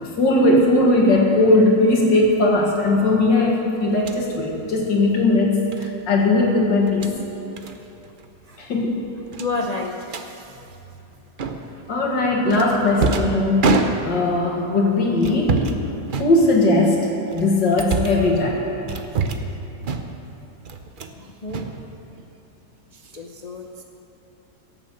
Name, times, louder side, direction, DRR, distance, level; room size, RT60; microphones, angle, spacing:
voice 1, 0.0-7.1 8.6-9.0 11.9-15.7 16.2-18.6, left 2 dB, 80° left, -1 dB, 2.6 m, -19 dB
sound 1, 3.9-4.2 5.7-5.9 6.8-7.2 7.6-7.8 8.0-8.3 8.5-8.6 9.3-10.3 11.4-11.8 12.5-14.4 15.2-15.8 16.1-16.8 17.3-18.3 18.9-19.5 19.8-20.3 20.6-21.2 21.5-22.3, right 4 dB, 60° right, 0.5 m, -26 dB
voice 2, 9.4-10.5 21.2-21.7 22.9-23.8, left 3 dB, 55° left, 1 dB, 0.4 m, -30 dB
17.0 x 7.3 x 7.8 m, 2.9 s
omnidirectional pair, 1.9 m